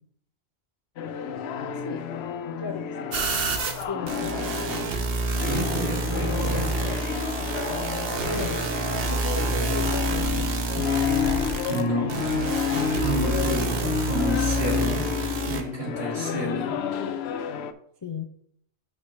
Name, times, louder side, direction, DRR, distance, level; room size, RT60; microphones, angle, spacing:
sound 1, 1.0-17.7, left 7 dB, 70° left, 0.8 m, -30 dB
voice 1, 1.8-2.1 2.6-3.1 3.8-4.4 8.3-8.6 9.0-10.9 17.0-17.1 18.0-18.3, left 4 dB, 40° left, 4 dB, 0.4 m, -35 dB
sound 2, 3.1-15.6, right 3 dB, 60° right, 1.0 m, -28 dB
voice 2, 5.4-6.7 11.7-12.5 13.0-15.0 15.5-16.7, right 1 dB, 40° right, -4 dB, 2.4 m, -30 dB
sound 3, 10.9-11.6 12.0-12.7 13.0-13.6, left 1 dB, 90° right, 1.4 m, -39 dB
5.9 x 4.3 x 5.6 m, 0.67 s
omnidirectional pair, 1.2 m